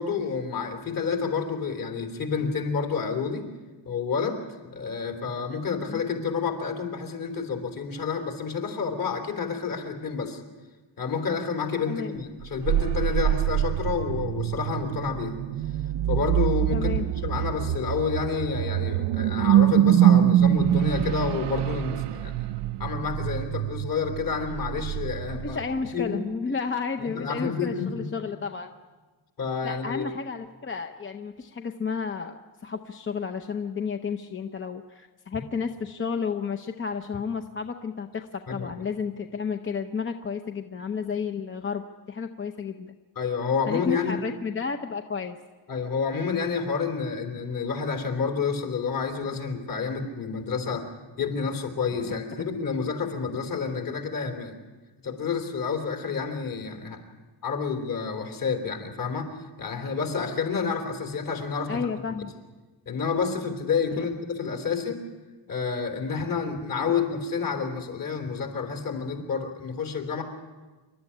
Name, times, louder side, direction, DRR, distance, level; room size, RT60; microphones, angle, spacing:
voice 1, 0.0-3.5 3.8-4.4 4.6-10.4 11.0-15.4 16.1-22.4 22.8-25.6 25.9-26.2 27.0-28.1 29.4-30.1 38.6-38.7 43.1-44.2 45.7-50.9 51.2-54.5 55.0-57.0 57.4-59.3 59.6-61.8 62.8-65.0 65.5-70.2, left 5 dB, 50° left, 5 dB, 3.4 m, -29 dB
voice 2, 5.9-6.2 11.9-12.2 16.7-17.1 25.4-28.7 29.6-42.9 43.7-45.4 52.0-52.2 61.7-62.3 63.9-64.1, left 5 dB, 30° left, 6 dB, 0.7 m, -32 dB
sound 1, 12.4-25.9, right 12 dB, 75° right, 0.6 m, -24 dB
27.5 x 12.5 x 9.9 m, 1.3 s
wide cardioid pair, 175°, 42 cm